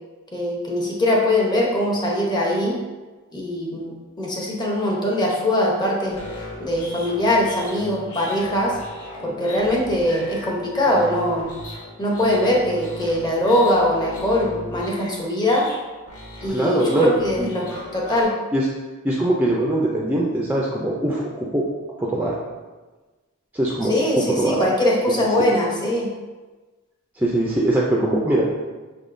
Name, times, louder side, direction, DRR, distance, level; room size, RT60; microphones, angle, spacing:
voice 1, 0.3-2.8 3.3-6.2 6.6-8.8 9.2-11.5 12.0-15.7 16.4-18.3 23.9-26.1, left 1 dB, 20° left, -3 dB, 0.9 m, -21 dB
sound 1, 6.1-18.2, left 1 dB, 85° left, 1.2 m, -38 dB
voice 2, 16.5-17.5 18.5-18.7 19.0-21.6 22.0-22.4 23.5-24.6 27.2-28.4, right 1 dB, 10° right, -4 dB, 0.4 m, -22 dB
5.9 x 3.5 x 2.5 m, 1.2 s
head